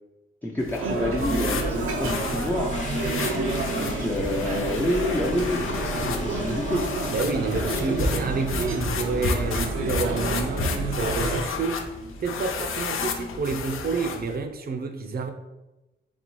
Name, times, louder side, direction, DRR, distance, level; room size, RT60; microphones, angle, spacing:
voice 1, 0.4-2.8 3.6-6.9 7.6-8.0, left 1 dB, 10° left, -1 dB, 0.4 m, -28 dB
sound 1, 0.6-14.4, left 4 dB, 80° left, 0.5 m, -32 dB
sound 2, 0.8-11.4, right 2 dB, 90° right, 0.6 m, -29 dB
Toilet flush, 1.7-14.0, left 2 dB, 35° left, 0.7 m, -40 dB
voice 2, 7.1-11.8 12.2-15.3, right 4 dB, 45° right, 6 dB, 0.5 m, -29 dB
4.1 x 4.0 x 3.0 m, 1.0 s
wide cardioid pair, 155°, 21 cm